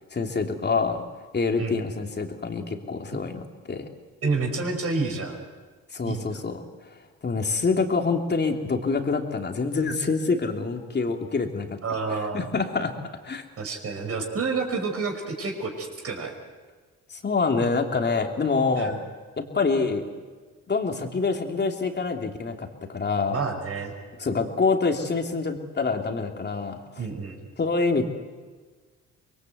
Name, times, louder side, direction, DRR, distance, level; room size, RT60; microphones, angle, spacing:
voice 1, 0.1-1.0 1.3-3.9 5.9-6.5 7.2-11.7 12.1-12.9 13.2-13.4 17.1-19.0 19.4-20.1 20.7-22.7 22.9-23.4 24.2-26.8 27.6-28.1, left 4 dB, 35° left, 3 dB, 3.1 m, -26 dB
voice 2, 4.2-5.4 6.0-6.4 11.8-12.5 13.6-16.3 18.8-19.0 23.3-23.9 27.0-27.5, right 4 dB, 50° right, 2 dB, 5.8 m, -29 dB
25.5 x 21.5 x 8.1 m, 1.4 s
cardioid pair, 90°, 30 cm